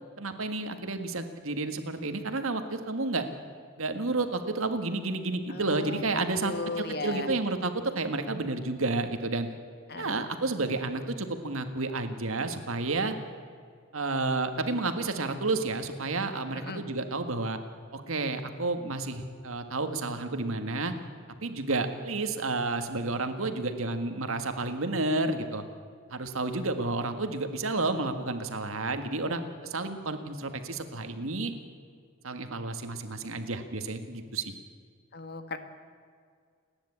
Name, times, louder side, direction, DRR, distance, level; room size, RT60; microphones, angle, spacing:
voice 1, 0.2-3.2 3.8-9.5 10.0-13.1 13.9-17.6 17.9-20.9 21.4-25.6 26.1-31.5 32.2-34.5, right 3 dB, 75° right, 7 dB, 1.8 m, -31 dB
voice 2, 5.5-7.3 9.9-10.2 16.5-16.8 35.1-35.6, left 3 dB, 50° left, 8 dB, 1.6 m, -36 dB
29.0 x 10.5 x 8.6 m, 2.1 s
head